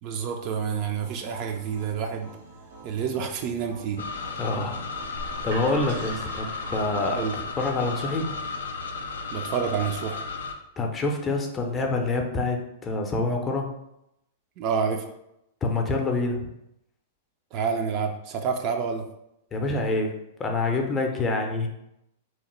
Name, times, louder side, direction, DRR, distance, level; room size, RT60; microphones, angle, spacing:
voice 1, 0.0-2.3 2.8-4.0 7.1-7.3 9.3-10.2 14.6-15.1 17.5-19.1, right 6 dB, 45° right, 4 dB, 0.4 m, -28 dB
sound 1, 0.7-8.6, right 2 dB, 80° right, 1.3 m, -48 dB
sound 2, 4.0-10.5, left 4 dB, 75° left, 0.4 m, -34 dB
voice 2, 4.4-7.2 7.6-8.3 10.8-13.7 15.6-16.5 19.5-20.1 20.4-21.7, left 2 dB, 20° left, 2 dB, 0.5 m, -27 dB
sound 3, 5.0-10.8, right 3 dB, 65° right, 0.8 m, -44 dB
2.8 x 2.1 x 3.1 m, 0.82 s
hypercardioid pair, 105°, 0 cm